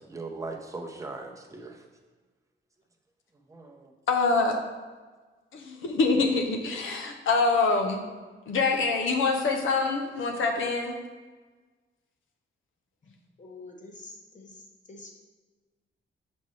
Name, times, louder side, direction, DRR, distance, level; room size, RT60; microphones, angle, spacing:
voice 1, 0.0-1.8 3.5-3.9, right 3 dB, 15° right, 2 dB, 0.7 m, -39 dB
voice 2, 4.1-4.6 5.5-8.0 8.5-11.0, left 3 dB, 80° left, 4 dB, 0.7 m, -25 dB
voice 3, 13.4-14.6 14.9-15.2, left 2 dB, 40° left, 1 dB, 1.0 m, -46 dB
5.9 x 5.2 x 3.2 m, 1.4 s
cardioid pair, 105°, 20 cm